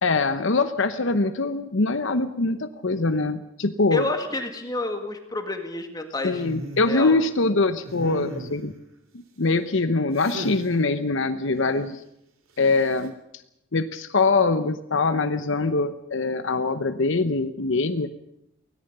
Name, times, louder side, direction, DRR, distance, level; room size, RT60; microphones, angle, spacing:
voice 1, 0.0-4.1 6.2-8.7 9.1-12.0 12.6-13.1 13.7-18.1, left 3 dB, 60° left, 10 dB, 0.9 m, -23 dB
voice 2, 3.9-6.4 6.9-7.2, left 2 dB, 20° left, 5 dB, 2.0 m, -29 dB
sound 1, 6.4-6.9 7.8-8.7 10.2-10.7 12.6-13.1, right 1 dB, 75° right, 3.3 m, -36 dB
24.0 x 18.0 x 6.8 m, 0.81 s
head